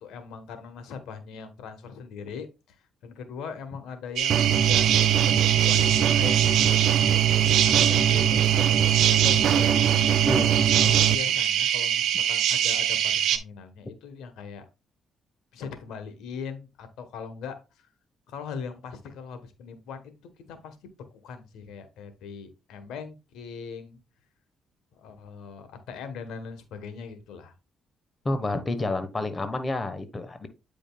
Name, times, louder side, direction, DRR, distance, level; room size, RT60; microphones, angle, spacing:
voice 1, 0.0-2.8 3.0-4.9 5.2-9.7 10.8-14.7 15.5-17.9 18.3-20.1 20.5-20.8 21.2-24.0 24.9-27.5, left 6 dB, 90° left, 8 dB, 1.1 m, -40 dB
sound 1, 4.2-13.4, right 10 dB, 85° right, 0.8 m, -24 dB
sound 2, 4.3-11.2, right 10 dB, 60° right, 0.4 m, -23 dB
voice 2, 10.3-10.6 28.2-30.5, left 2 dB, 25° left, 9 dB, 1.1 m, -29 dB
8.8 x 5.2 x 2.3 m, 0.27 s
cardioid pair, 90°, 0 cm